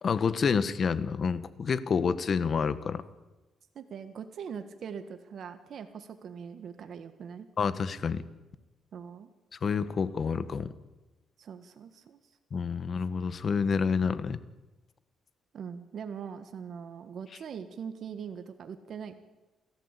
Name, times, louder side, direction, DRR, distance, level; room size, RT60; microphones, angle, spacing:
voice 1, 0.0-3.0 7.6-8.2 9.5-10.7 12.5-14.4, left 5 dB, 45° left, 13 dB, 1.4 m, -28 dB
voice 2, 3.7-7.5 8.9-9.3 11.4-12.2 15.5-19.1, right 7 dB, 60° right, 8 dB, 1.6 m, -41 dB
29.0 x 14.0 x 8.4 m, 1.1 s
cardioid pair, 90°, 0 cm